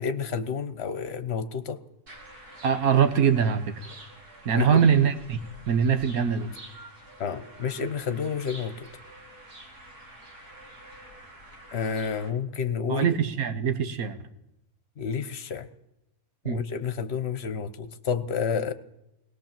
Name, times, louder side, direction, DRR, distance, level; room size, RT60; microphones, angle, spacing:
voice 1, 0.0-1.8 4.5-4.8 7.2-8.9 11.7-13.1 15.0-15.7 16.4-18.7, left 6 dB, 45° left, 11 dB, 1.2 m, -30 dB
sound 1, 2.1-12.3, right 1 dB, 90° right, 4.4 m, -48 dB
voice 2, 2.6-3.7 4.4-5.4 5.7-6.5 12.9-14.2 16.4-16.6, right 7 dB, 70° right, 8 dB, 1.7 m, -22 dB
21.5 x 18.5 x 7.5 m, 0.87 s
omnidirectional pair, 1.6 m